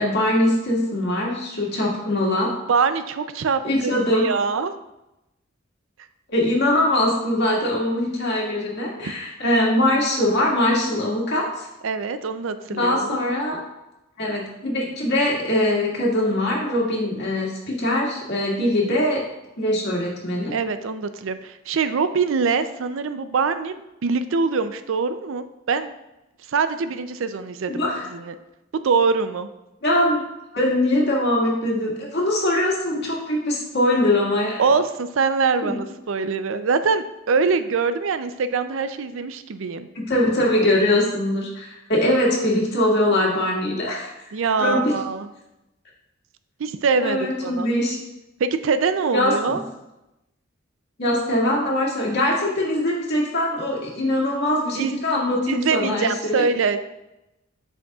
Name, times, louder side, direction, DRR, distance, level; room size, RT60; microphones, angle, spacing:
voice 1, 0.0-2.5 3.6-4.3 6.3-11.7 12.7-13.6 14.2-19.2 19.6-20.5 27.7-28.1 29.8-30.2 30.5-34.6 35.6-35.7 40.0-44.1 44.6-44.9 47.0-48.0 49.1-49.6 51.0-56.5, left 1 dB, 55° left, -3 dB, 1.9 m, -22 dB
voice 2, 2.7-4.7 9.0-9.1 11.8-13.2 20.5-25.9 26.5-28.4 28.7-29.5 34.6-39.9 44.3-45.3 46.6-47.7 48.4-49.6 54.8-55.0 55.5-56.9, right 5 dB, 70° right, 11 dB, 0.4 m, -24 dB
7.6 x 6.3 x 2.4 m, 0.93 s
head